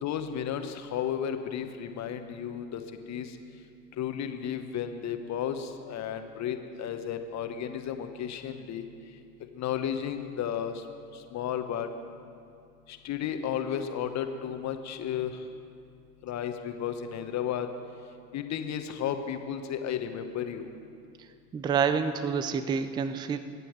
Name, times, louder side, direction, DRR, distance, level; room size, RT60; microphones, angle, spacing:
voice 1, 0.0-3.4 3.9-8.8 9.5-10.8 11.1-11.9 12.9-15.4 16.2-17.7 18.3-20.7, left 9 dB, 35° left, 7 dB, 1.3 m, -33 dB
voice 2, 21.5-23.4, right 6 dB, 10° right, 11 dB, 0.4 m, -28 dB
23.0 x 9.8 x 4.8 m, 2.4 s
hypercardioid pair, 80°, 49 cm